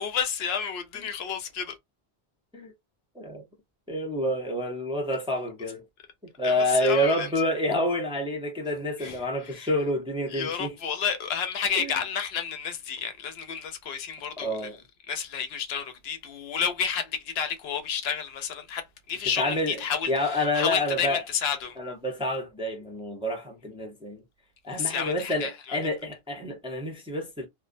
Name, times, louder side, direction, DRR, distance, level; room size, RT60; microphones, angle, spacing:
voice 1, 0.0-1.7 6.4-7.3 9.0-9.7 10.3-14.7 15.1-21.8 24.7-25.8, left 7 dB, 75° left, 0.8 m, -31 dB
voice 2, 3.9-5.8 6.2-10.7 11.8-12.0 14.4-14.8 19.4-19.8 20.1-21.2 21.8-24.2 24.6-27.5, left 1 dB, 5° right, 0.5 m, -28 dB
2.5 x 2.2 x 2.5 m
omnidirectional pair, 1.0 m